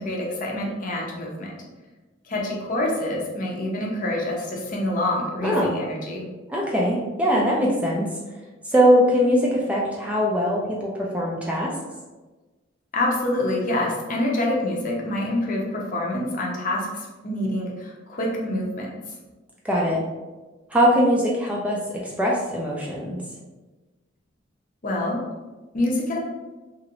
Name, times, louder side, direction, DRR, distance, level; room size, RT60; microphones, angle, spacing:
voice 1, 0.0-1.6 2.3-6.3 12.9-18.9 24.8-25.2 25.7-26.2, left 1 dB, 45° left, -2 dB, 0.6 m, -26 dB
voice 2, 5.4-5.7 6.5-8.1 8.7-10.9 11.1-11.7 19.6-20.0 20.7-21.8 22.0-23.2, equal, 5° right, -4 dB, 0.4 m, -21 dB
2.9 x 2.4 x 2.9 m, 1.2 s
head